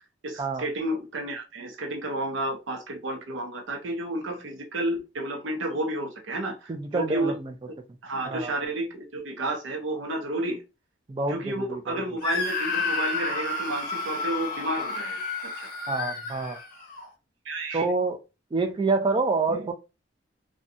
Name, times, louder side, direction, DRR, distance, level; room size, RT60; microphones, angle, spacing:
voice 1, 0.2-7.4 8.0-10.6 11.3-15.2 15.6-15.7 17.4-17.8 19.5-19.7, right 1 dB, 85° right, 0.6 m, -31 dB
voice 2, 6.7-7.5 8.3-8.5 11.1-12.0 15.9-16.6 17.7-18.2 18.5-19.7, right 3 dB, 25° right, 0.3 m, -27 dB
Screaming, 12.2-17.1, left 3 dB, 50° left, 0.6 m, -31 dB
2.6 x 2.2 x 2.5 m
head